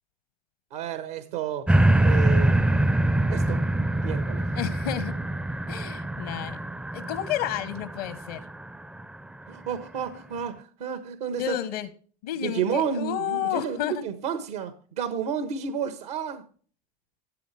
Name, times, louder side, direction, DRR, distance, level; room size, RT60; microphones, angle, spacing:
voice 1, 0.7-1.7 2.0-2.6 3.3-3.6 4.0-4.4 9.5-11.6 12.4-16.4, right 7 dB, 80° right, 10 dB, 1.3 m, -31 dB
sound 1, 1.7-9.0 9.6-9.7, right 1 dB, 5° right, 0.4 m, -24 dB
voice 2, 4.5-5.1 5.7-6.6 6.9-8.4 11.4-11.9 12.2-14.0, left 11 dB, 75° left, 12 dB, 1.1 m, -31 dB
14.0 x 8.4 x 3.3 m, 0.43 s
hypercardioid pair, 95°, 20 cm